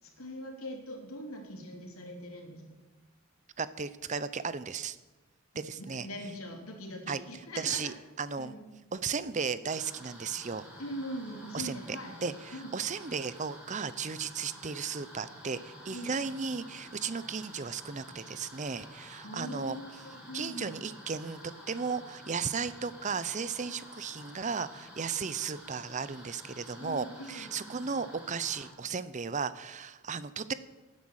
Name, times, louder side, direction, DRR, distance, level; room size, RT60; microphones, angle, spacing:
voice 1, 0.0-2.7 5.5-7.9 8.4-8.6 10.8-12.2 12.5-12.7 15.9-16.1 19.2-20.8 23.7-23.8 26.8-27.5, equal, 90° left, 2 dB, 3.3 m, -42 dB
voice 2, 3.6-5.0 5.6-6.1 7.1-7.2 7.6-8.6 8.9-10.7 11.5-19.8 20.3-30.5, right 5 dB, 35° right, 15 dB, 0.6 m, -35 dB
sound 1, 9.6-28.7, equal, 5° right, 5.0 m, -50 dB
16.0 x 9.5 x 6.5 m, 1.2 s
head